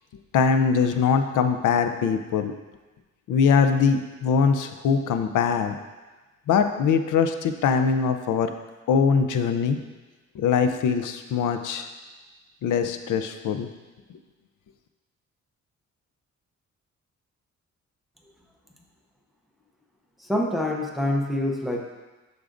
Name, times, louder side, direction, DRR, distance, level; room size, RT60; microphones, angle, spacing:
voice 1, 0.3-2.5 3.3-5.7 6.5-8.5 8.9-9.8 10.4-11.9 12.6-13.7, left 6 dB, 90° left, 7 dB, 0.5 m, -22 dB
voice 2, 20.3-21.8, left 1 dB, ahead, -1 dB, 0.6 m, -25 dB
8.3 x 6.2 x 2.5 m, 1.2 s
wide cardioid pair, 175°, 30 cm